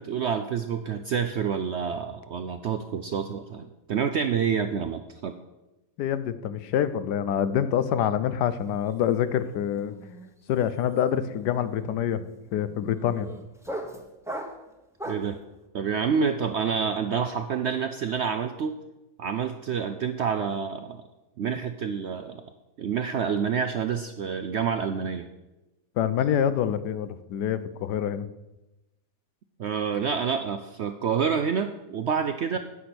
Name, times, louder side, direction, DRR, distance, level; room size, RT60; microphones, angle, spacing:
voice 1, 0.0-5.4 15.1-15.4 15.7-18.8 19.2-21.0 21.4-22.4 22.8-25.3 29.6-32.6, right 6 dB, 70° right, 8 dB, 0.6 m, -28 dB
voice 2, 6.0-9.9 10.5-12.2 12.5-13.3 26.0-28.3, left 9 dB, 85° left, 13 dB, 1.3 m, -26 dB
sound 1, 8.6-8.9 9.2-15.4, right 1 dB, ahead, 0.8 m, -40 dB
9.5 x 8.4 x 6.0 m, 1.0 s
omnidirectional pair, 1.7 m